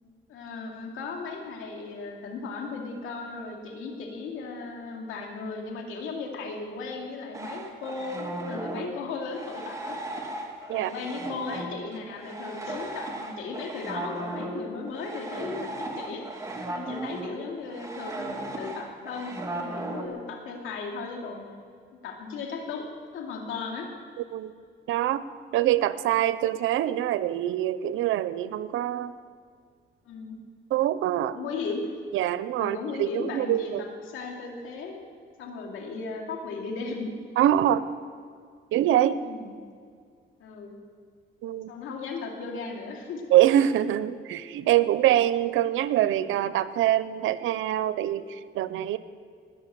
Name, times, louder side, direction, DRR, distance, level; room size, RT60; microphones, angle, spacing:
voice 1, 0.3-10.0 10.7-16.2 16.7-21.5 22.0-23.9 30.0-30.4 31.3-31.8 32.6-35.0 35.4-37.1 39.2-39.5 40.4-40.8 41.7-43.2 43.6-43.7, left 4 dB, 85° left, 0 dB, 2.7 m, -36 dB
sound 1, 7.3-20.1, right 2 dB, 15° right, 2.4 m, -36 dB
voice 2, 24.9-25.2 25.5-29.1 30.7-31.4 32.1-33.9 37.4-37.9 38.7-39.2 41.4-41.7 43.3-49.0, right 12 dB, 85° right, 15 dB, 0.7 m, -24 dB
20.0 x 7.2 x 7.6 m, 2.1 s
cardioid pair, 90°, 20 cm